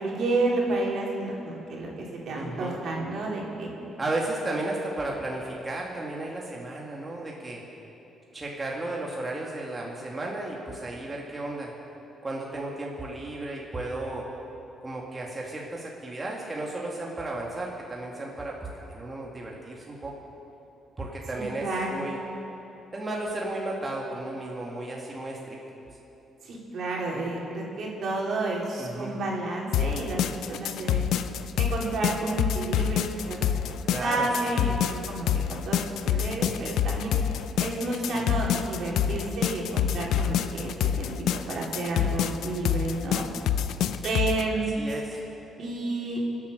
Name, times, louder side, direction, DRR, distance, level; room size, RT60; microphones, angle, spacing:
voice 1, 0.0-3.7 21.3-22.0 26.4-31.1 31.6-37.2 37.6-41.1 41.5-43.2 44.0-44.7 45.6-46.2, right 2 dB, 65° right, -2 dB, 3.4 m, -30 dB
voice 2, 2.3-2.8 4.0-7.6 8.3-11.7 12.2-14.3 14.8-20.2 21.0-22.2 22.9-25.6 28.8-29.2 33.8-34.8 38.0-38.3 44.7-45.2, right 2 dB, 25° right, -2 dB, 2.0 m, -34 dB
sound 1, 29.7-44.4, left 9 dB, 80° left, 0.6 m, -27 dB
24.5 x 8.4 x 6.5 m, 3.0 s
cardioid pair, 90°, 0 cm